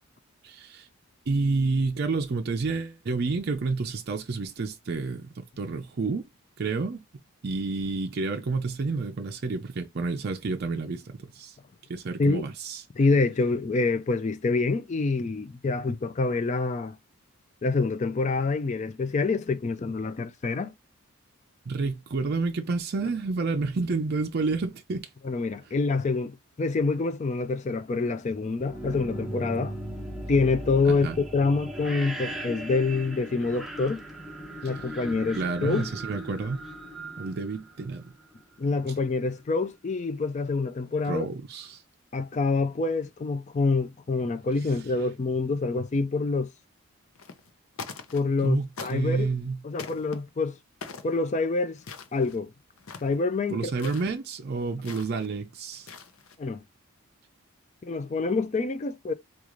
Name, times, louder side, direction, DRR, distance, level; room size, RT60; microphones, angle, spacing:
voice 1, 0.4-0.9 1.3-6.3 6.6-7.0 7.4-11.6 11.9-12.8 21.7-25.1 31.0-31.2 34.6-34.7 35.3-36.6 37.2-38.1 41.0-41.8 44.6-44.7 48.4-49.6 53.5-55.9, right 3 dB, 45° right, 0.4 m, -29 dB
voice 2, 13.0-17.0 17.6-20.7 25.2-29.7 30.3-31.1 31.3-34.0 34.6-35.9 38.6-41.3 42.1-46.5 48.1-49.3 49.6-50.6 51.0-51.8 52.1-52.5 53.0-53.7 56.4-56.6 57.8-59.1, left 3 dB, 30° left, 0.3 m, -26 dB
sound 1, 28.5-38.3, right 1 dB, ahead, 0.6 m, -38 dB
sound 2, 47.1-47.5 47.7-48.4 48.8-49.3 49.8-50.2 50.8-51.2 51.8-52.4 52.8-53.2 53.7-54.1 54.8-55.3 55.7-56.4, left 5 dB, 70° left, 0.7 m, -42 dB
3.7 x 2.4 x 3.0 m
head